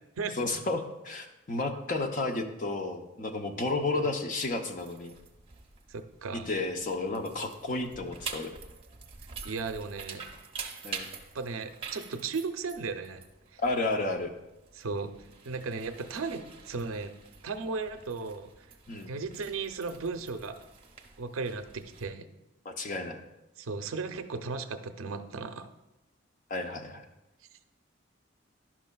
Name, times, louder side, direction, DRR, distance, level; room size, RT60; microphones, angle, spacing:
voice 1, 0.4-5.1 6.3-8.5 10.8-11.1 13.6-14.3 18.9-19.1 22.6-23.2 26.5-27.1, left 2 dB, 40° left, 5 dB, 0.6 m, -32 dB
sound 1, 4.4-22.0, right 5 dB, 25° right, 0.6 m, -47 dB
voice 2, 5.9-6.5 9.4-10.3 11.3-13.2 13.5-13.6 14.7-15.1 15.5-17.1 17.4-18.5 19.1-20.6 21.2-22.3 23.6-25.7, right 4 dB, 90° right, 9 dB, 0.5 m, -36 dB
11.5 x 6.0 x 2.3 m, 0.95 s
head